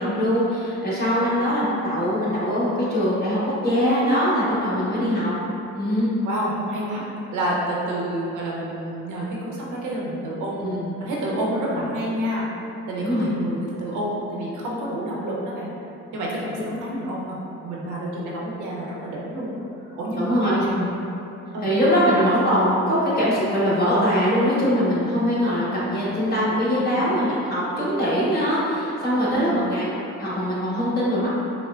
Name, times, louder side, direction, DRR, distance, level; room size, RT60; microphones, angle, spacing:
voice 1, 0.0-5.3 5.7-6.1 10.6-10.9 11.7-11.9 13.0-13.3 20.1-20.9 21.6-29.9 30.2-31.4, equal, 30° left, -10 dB, 1.4 m, -22 dB
voice 2, 4.7-5.3 6.2-7.0 7.3-10.7 11.0-12.5 12.9-15.7 16.1-19.7 20.0-20.7 21.5-21.7 22.0-22.2 26.8-27.0 29.2-29.7, right 1 dB, 75° right, -4 dB, 0.8 m, -29 dB
5.5 x 2.1 x 2.4 m, 3.0 s
cardioid pair, 90°, 30 cm